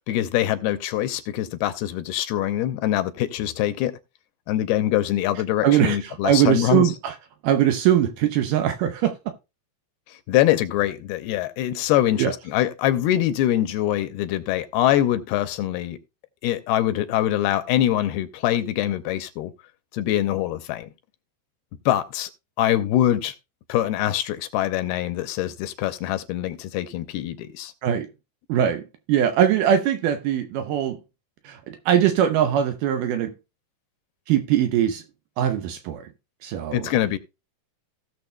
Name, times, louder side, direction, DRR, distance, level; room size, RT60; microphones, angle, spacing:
voice 1, 0.1-3.9 4.5-6.9 10.1-16.0 16.4-19.5 19.9-20.9 21.9-22.3 22.6-23.4 23.7-27.7 36.7-37.2, left 13 dB, 80° left, 2.5 m, -24 dB
voice 2, 5.6-7.1 7.4-9.1 12.2-12.3 27.8-28.1 28.5-28.8 29.1-31.0 31.4-33.3 34.3-35.0 35.4-36.1 36.4-36.9, right 10 dB, 90° right, 1.8 m, -21 dB
17.0 x 6.8 x 2.2 m
omnidirectional pair, 4.6 m